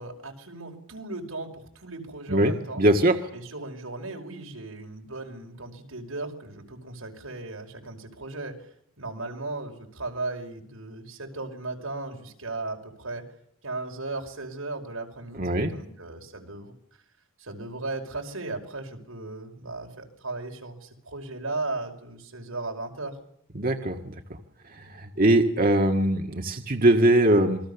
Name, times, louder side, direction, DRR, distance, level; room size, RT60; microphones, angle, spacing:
voice 1, 0.0-2.8 3.3-8.7 9.0-13.2 13.6-16.8 17.4-23.2, right 2 dB, 85° right, 2 dB, 5.3 m, -36 dB
voice 2, 2.3-3.2 15.3-15.7 23.6-24.1 24.7-27.6, right 1 dB, 45° right, 4 dB, 1.8 m, -21 dB
28.0 x 22.0 x 7.0 m, 0.70 s
head